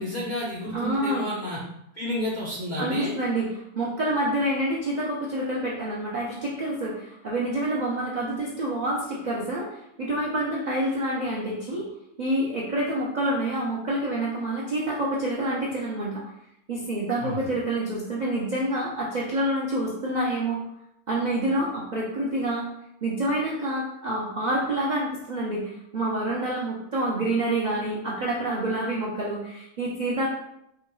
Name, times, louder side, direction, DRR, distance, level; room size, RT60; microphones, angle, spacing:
voice 1, 0.0-1.6 1.9-3.1 17.2-17.5, left 1 dB, 65° left, -5 dB, 0.4 m, -31 dB
voice 2, 0.7-1.3 2.8-11.9 12.2-16.2 16.7-20.6 21.1-22.7 23.0-30.3, right 1 dB, 65° right, -5 dB, 0.4 m, -27 dB
4.7 x 2.2 x 3.1 m, 0.80 s
omnidirectional pair, 1.7 m